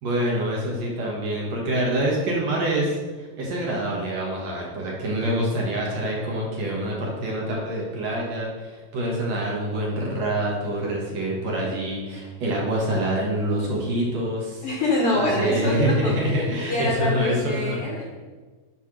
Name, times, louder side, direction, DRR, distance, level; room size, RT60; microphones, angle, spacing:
voice 1, 0.0-14.6 15.1-17.8, right 1 dB, 55° right, -3 dB, 2.2 m, -26 dB
voice 2, 14.6-18.0, left 2 dB, 90° left, -3 dB, 1.2 m, -25 dB
8.6 x 3.4 x 6.1 m, 1.3 s
omnidirectional pair, 4.3 m